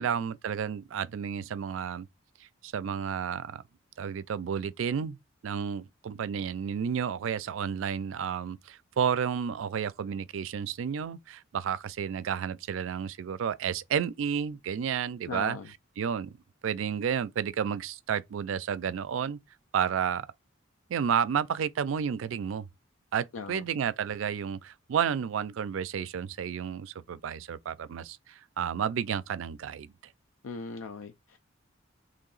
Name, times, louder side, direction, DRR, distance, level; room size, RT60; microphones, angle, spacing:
voice 1, 0.0-2.1 2.6-3.6 4.0-5.2 5.4-15.6 16.0-16.4 16.6-19.4 19.7-20.3 20.9-22.7 23.1-29.9, right 7 dB, 70° right, 0.3 m, -31 dB
voice 2, 15.3-15.7 23.3-23.6 30.4-31.4, left 4 dB, 80° left, 0.4 m, -38 dB
3.1 x 2.8 x 3.8 m
head